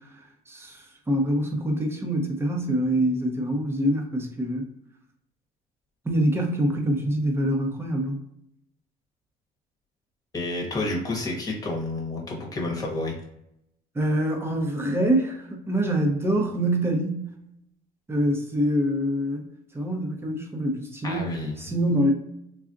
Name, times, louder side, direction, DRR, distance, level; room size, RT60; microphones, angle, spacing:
voice 1, 0.5-4.6 6.0-8.2 13.9-17.3 18.1-19.5 19.7-22.1, right 1 dB, 15° right, 2 dB, 0.8 m, -25 dB
voice 2, 10.3-13.1 21.0-21.6, left 2 dB, 20° left, -1 dB, 1.1 m, -30 dB
3.6 x 2.4 x 2.6 m, 0.78 s
cardioid pair, 110°, 17 cm